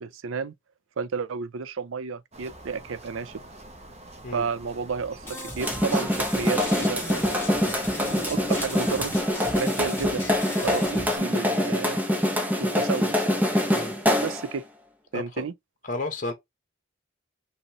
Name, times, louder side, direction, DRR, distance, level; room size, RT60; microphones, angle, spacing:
voice 1, 0.0-0.5 1.0-3.4 4.3-7.4 7.9-10.2 10.6-12.0 12.6-13.4 14.2-14.7 15.1-15.5, right 5 dB, 90° right, 0.5 m, -32 dB
sound 1, 2.3-9.3, right 1 dB, 30° right, 1.1 m, -46 dB
sound 2, 5.2-11.2, left 1 dB, 10° left, 1.5 m, -37 dB
sound 3, 5.6-14.5, left 1 dB, 10° right, 0.9 m, -25 dB
voice 2, 15.1-15.4 15.9-16.3, left 2 dB, 40° left, 1.1 m, -32 dB
5.3 x 2.9 x 2.9 m
head